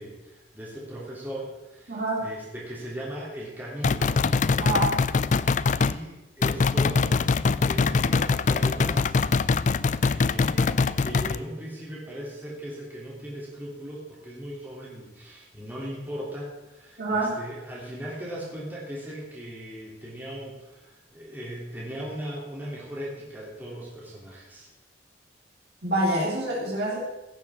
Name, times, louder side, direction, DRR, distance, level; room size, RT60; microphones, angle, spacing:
voice 1, 0.0-4.3 5.7-7.2 7.7-9.2 10.0-24.7, equal, 10° right, -6 dB, 3.3 m, -38 dB
voice 2, 1.9-2.2 4.6-5.0 17.0-17.3 25.8-27.0, right 1 dB, 60° right, -5 dB, 3.5 m, -26 dB
sound 1, 3.8-6.0 6.4-11.4, left 4 dB, 40° left, 0.4 m, -23 dB
15.5 x 7.0 x 7.3 m, 1.0 s
head